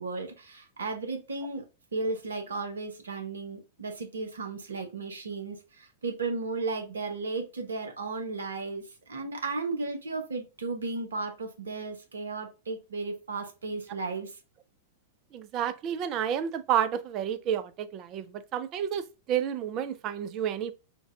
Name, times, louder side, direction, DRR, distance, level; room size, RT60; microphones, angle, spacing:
voice 1, 0.0-1.7 1.9-14.4, right 3 dB, 75° right, 1.0 m, -34 dB
voice 2, 15.3-20.7, right 9 dB, 40° right, 0.4 m, -30 dB
3.9 x 2.3 x 3.3 m
figure-of-eight pair, 100°, 0 cm